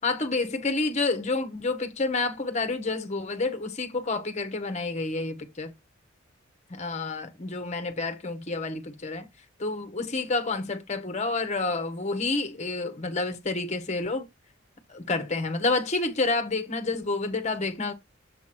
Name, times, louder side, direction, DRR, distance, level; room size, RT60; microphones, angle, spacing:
voice 1, 0.0-5.7 6.7-9.3 9.6-14.3 14.9-17.9, left 3 dB, 35° left, 1.0 m, -29 dB
7.0 x 3.0 x 5.9 m
head